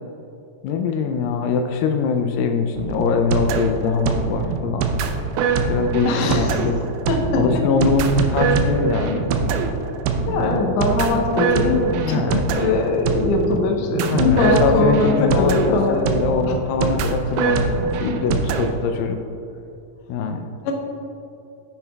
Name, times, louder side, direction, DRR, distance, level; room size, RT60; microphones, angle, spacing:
voice 1, 0.6-4.9 5.7-6.9 7.3-9.3 11.8-12.5 14.0-19.2 20.1-20.5, left 5 dB, 85° left, 5 dB, 2.2 m, -22 dB
sound 1, 2.8-18.7, right 5 dB, 90° right, 2.4 m, -23 dB
voice 2, 6.1-6.6 7.1-7.6 10.3-16.0 20.6-20.7, left 3 dB, 65° left, 1 dB, 1.8 m, -21 dB
9.7 x 8.9 x 2.3 m, 2.8 s
omnidirectional pair, 4.0 m